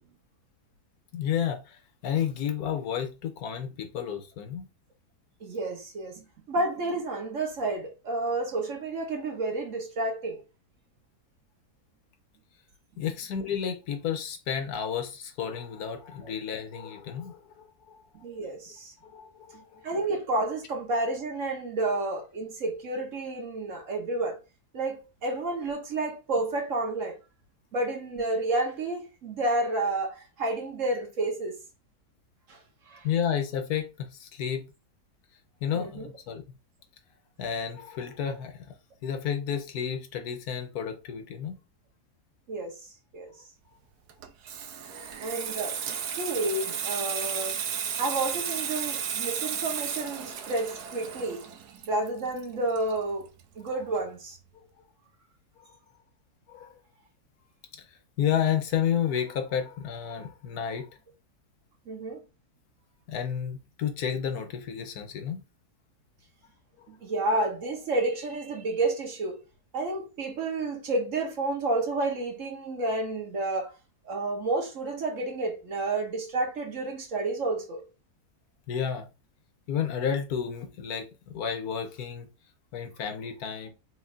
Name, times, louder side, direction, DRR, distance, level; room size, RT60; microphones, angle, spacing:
voice 1, 1.1-4.7 13.0-18.0 19.0-19.8 33.0-34.7 35.6-36.4 37.4-38.6 39.0-41.6 44.9-45.1 56.5-56.7 57.7-60.9 63.1-65.4 66.8-66.9 78.7-79.1 79.7-82.3 82.7-83.7, left 8 dB, 75° left, 1.3 m, -31 dB
voice 2, 5.4-10.4 18.2-18.9 19.8-24.4 24.7-27.2 27.7-31.6 32.5-32.6 32.8-33.0 35.7-36.1 42.5-43.3 45.2-45.8 46.2-47.6 48.0-51.4 51.9-53.3 53.6-54.4 61.9-62.2 66.9-69.4 69.7-73.7 74.0-77.8, right 2 dB, 55° right, 1.4 m, -30 dB
Water tap faucet / Sink (filling or washing), 44.1-53.4 53.7-54.0, right 8 dB, 80° right, 1.2 m, -34 dB
4.5 x 3.9 x 2.5 m
omnidirectional pair, 1.7 m